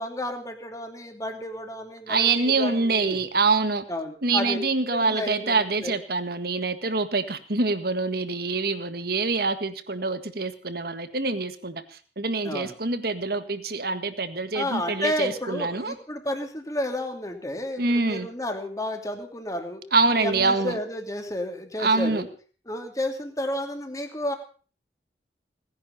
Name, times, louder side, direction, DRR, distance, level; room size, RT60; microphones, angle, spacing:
voice 1, 0.0-3.2 3.9-4.6 4.9-6.0 12.4-12.8 14.5-19.8 20.2-22.3 22.7-24.3, left 1 dB, 20° left, 4 dB, 2.6 m, -31 dB
voice 2, 2.1-3.8 4.2-11.8 12.2-15.9 17.8-18.3 19.9-20.8 21.8-22.3, right 3 dB, 55° right, 10 dB, 1.7 m, -25 dB
18.5 x 10.5 x 6.8 m, 0.41 s
head